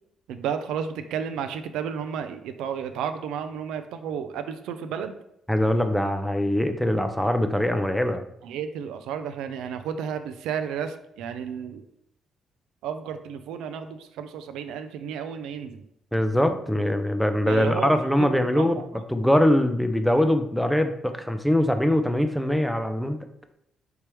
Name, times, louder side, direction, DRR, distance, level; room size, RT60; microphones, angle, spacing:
voice 1, 0.3-5.1 8.4-11.8 12.8-15.8 17.5-17.9 18.2-19.0, right 7 dB, 90° right, 9 dB, 0.3 m, -32 dB
voice 2, 5.5-8.2 16.1-18.7 19.1-23.2, left 1 dB, 5° left, 7 dB, 0.4 m, -22 dB
4.5 x 3.4 x 3.0 m, 0.76 s
cardioid pair, 90°, 0 cm